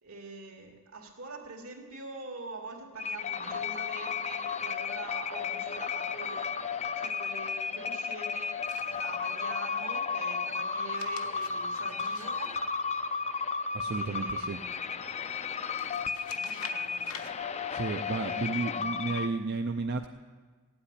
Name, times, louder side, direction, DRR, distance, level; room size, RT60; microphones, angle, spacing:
voice 1, 0.0-12.6 13.9-15.0 16.3-17.2 18.1-19.0, right 3 dB, 75° right, 2 dB, 2.5 m, -45 dB
sound 1, 3.0-19.3, left 5 dB, 30° left, 0.5 m, -34 dB
sound 2, 8.6-9.4 10.8-13.3 15.7-17.3, left 6 dB, 75° left, 1.1 m, -48 dB
voice 2, 13.7-14.6 17.7-20.1, right 3 dB, 50° right, 5 dB, 0.5 m, -32 dB
15.5 x 8.7 x 9.8 m, 1.4 s
head